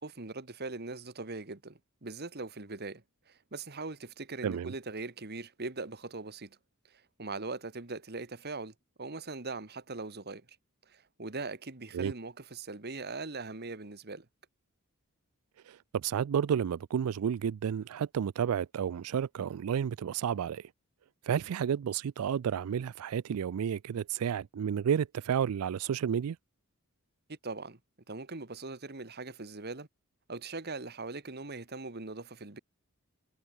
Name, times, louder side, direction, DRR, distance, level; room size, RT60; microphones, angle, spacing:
voice 1, 0.0-6.6 6.9-8.7 9.0-10.4 10.9-14.3 27.3-27.8 28.1-29.9 30.3-32.6, right 3 dB, 45° right, 1.6 m, -41 dB
voice 2, 4.4-4.7 11.9-12.1 15.7-20.7 21.2-26.4, right 8 dB, 80° right, 0.4 m, -31 dB
head